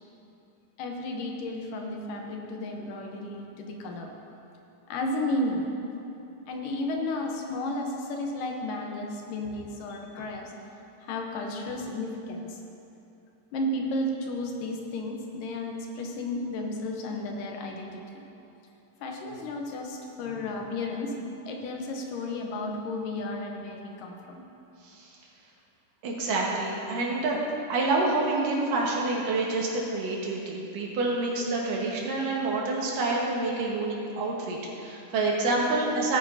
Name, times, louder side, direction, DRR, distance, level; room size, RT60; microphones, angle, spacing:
voice 1, 0.8-4.1 4.9-5.7 6.5-10.5 11.0-12.6 13.5-18.0 19.0-21.1 21.5-24.4, left 1 dB, 80° left, 1 dB, 2.6 m, -33 dB
voice 2, 26.0-27.4 27.7-36.2, right 2 dB, 80° right, -3 dB, 3.0 m, -27 dB
16.5 x 9.3 x 2.7 m, 2.8 s
omnidirectional pair, 3.8 m